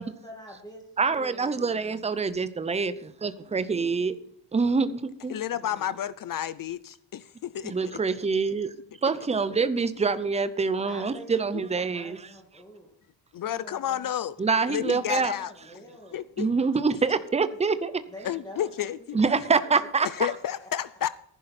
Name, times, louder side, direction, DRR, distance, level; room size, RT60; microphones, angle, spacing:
voice 1, 0.0-1.9 5.3-6.0 10.8-12.9 13.3-14.1 14.7-16.3 17.7-17.8 18.1-19.4 20.5-20.7, equal, 10° left, 2.3 m, -47 dB
voice 2, 1.0-2.9 3.2-4.1 4.5-5.3 7.6-8.7 9.0-12.2 14.4-15.3 16.4-18.0 19.1-20.1, right 4 dB, 15° right, 0.7 m, -25 dB
voice 3, 5.3-7.7 13.3-14.4 14.7-15.5 16.1-16.5 18.2-19.2 20.0-21.1, left 10 dB, 50° left, 0.5 m, -31 dB
14.5 x 11.0 x 4.3 m
wide cardioid pair, 170°, 43 cm